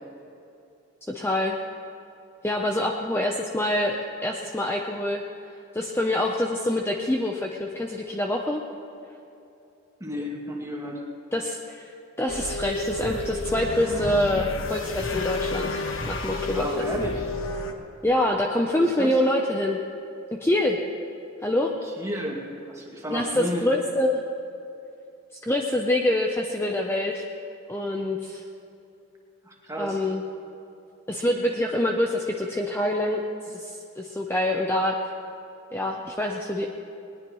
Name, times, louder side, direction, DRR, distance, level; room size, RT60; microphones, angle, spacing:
voice 1, 1.1-1.6 2.4-5.2 5.7-8.6 11.3-11.9 12.2-15.8 16.1-16.9 18.0-19.8 20.4-20.8 21.4-21.7 23.1-24.2 25.5-27.2 27.7-28.4 29.8-30.2 31.1-35.0 35.7-36.7, left 1 dB, 10° left, 1 dB, 0.7 m, -25 dB
voice 2, 10.0-11.0 16.3-17.2 18.7-19.1 22.0-23.6 29.4-30.0, equal, 15° right, -2 dB, 2.4 m, -32 dB
sound 1, 12.3-17.7, left 2 dB, 65° left, 1.3 m, -31 dB
20.5 x 20.5 x 3.1 m, 2.7 s
head